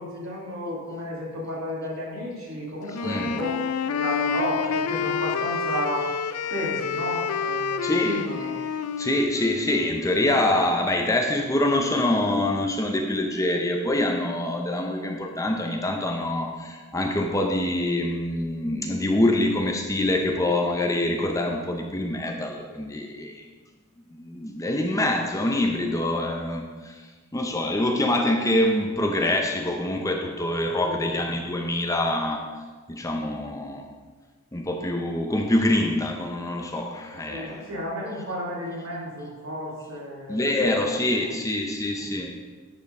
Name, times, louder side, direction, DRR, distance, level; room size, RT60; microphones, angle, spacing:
voice 1, 0.0-3.6 3.8-6.1 6.5-8.5 30.8-31.2 37.3-41.3 41.9-42.0, equal, 70° right, -4 dB, 2.8 m, -33 dB
Wind instrument woodwind instrument, 2.9-10.8, left 6 dB, 75° left, 0.4 m, -29 dB
voice 2, 3.0-3.4 7.8-8.2 9.0-23.5 24.1-32.4 32.9-33.9 34.5-37.7 40.3-42.3, left 1 dB, 15° left, 2 dB, 0.7 m, -25 dB
10.5 x 4.5 x 5.3 m, 1.4 s
head